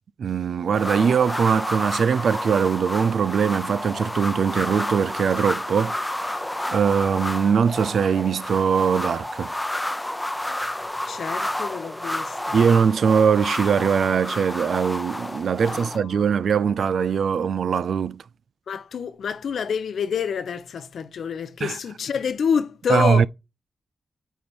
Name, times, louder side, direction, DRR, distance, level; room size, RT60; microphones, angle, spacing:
voice 1, 0.2-6.4 6.7-9.5 12.5-18.2 21.6-21.8 22.9-23.3, right 6 dB, 80° right, 0.3 m, -21 dB
sound 1, 0.7-16.0, left 1 dB, 10° left, 0.6 m, -30 dB
voice 2, 11.0-12.6 15.6-16.4 18.7-23.3, left 7 dB, 90° left, 0.8 m, -28 dB
9.2 x 3.4 x 4.4 m
wide cardioid pair, 110°, 0 cm